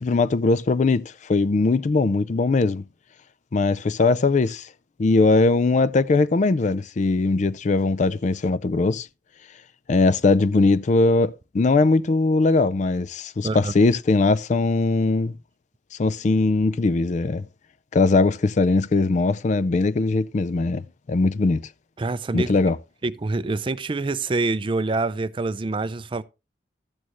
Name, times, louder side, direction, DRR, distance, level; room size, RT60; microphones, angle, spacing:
voice 1, 0.0-2.8 3.5-4.7 5.0-9.1 9.9-15.3 16.0-17.4 17.9-21.7 22.3-22.8, left 3 dB, 45° left, 0.4 m, -20 dB
voice 2, 13.4-13.7 22.0-22.5 23.0-26.2, right 3 dB, 30° right, 0.4 m, -26 dB
12.5 x 8.5 x 3.0 m
head